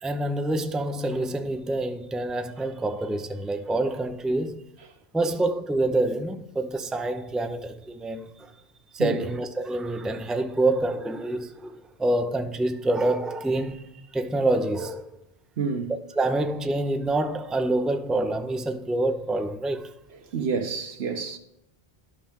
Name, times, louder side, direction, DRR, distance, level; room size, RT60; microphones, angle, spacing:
voice 1, 0.0-4.6 5.1-8.5 8.9-11.7 12.0-15.1 16.2-19.9, right 2 dB, ahead, 0.5 m, -27 dB
voice 2, 15.6-15.9 20.3-21.4, right 5 dB, 90° right, 1.3 m, -28 dB
11.5 x 5.8 x 3.7 m
omnidirectional pair, 1.0 m